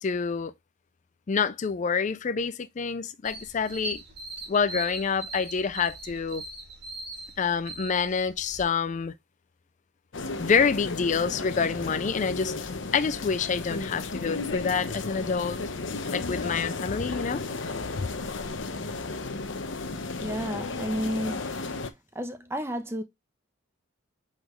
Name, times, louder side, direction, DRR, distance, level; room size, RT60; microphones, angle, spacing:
voice 1, 0.0-0.5 1.3-4.0 4.5-6.4 7.4-9.1 10.4-12.5 12.9-15.6 16.1-17.4 18.0-18.1, left 5 dB, 40° left, 0.4 m, -27 dB
sound 1, 3.2-8.6, right 3 dB, 55° right, 2.3 m, -40 dB
sound 2, 10.1-21.9, left 3 dB, 65° left, 0.9 m, -34 dB
voice 2, 20.2-21.4 22.1-23.0, equal, 15° right, 0.9 m, -31 dB
7.9 x 4.2 x 3.1 m
head